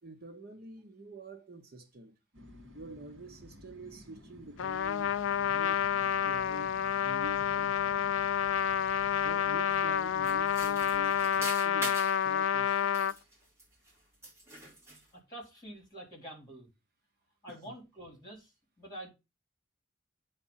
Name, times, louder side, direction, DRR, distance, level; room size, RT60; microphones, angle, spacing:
voice 1, 0.0-2.1 2.7-5.9 6.2-8.2 9.2-12.0 12.2-13.3 17.5-17.6, right 2 dB, 50° right, 1.0 m, -48 dB
sound 1, 2.3-11.4, equal, 80° right, 2.1 m, -54 dB
Trumpet, 4.6-13.1, left 9 dB, 75° left, 0.3 m, -29 dB
sound 2, 10.2-12.2 12.8-13.9 14.2-15.1, right 2 dB, 15° right, 2.1 m, -42 dB
voice 2, 15.1-16.7 17.4-19.1, right 1 dB, 20° left, 3.6 m, -47 dB
8.3 x 3.5 x 5.5 m
head